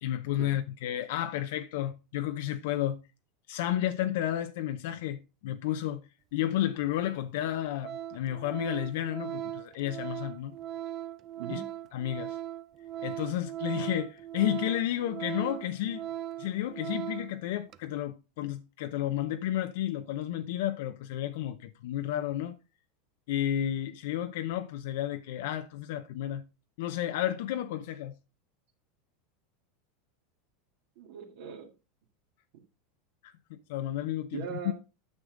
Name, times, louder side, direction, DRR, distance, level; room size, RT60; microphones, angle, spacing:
voice 1, 0.0-3.0 3.5-6.0 6.3-10.6 11.5-11.6 11.9-12.4 13.0-16.1 16.4-22.6 23.3-26.4 26.8-28.1 33.5-34.7, left 12 dB, 70° left, 0.6 m, -32 dB
Organ, 6.7-6.8 7.4-7.5 7.8-17.4 17.7-17.9, right 12 dB, 30° right, 0.4 m, -39 dB
voice 2, 31.0-31.7 34.3-34.7, right 8 dB, 70° right, 1.9 m, -39 dB
9.5 x 6.7 x 3.7 m
supercardioid pair, 160°, 0 cm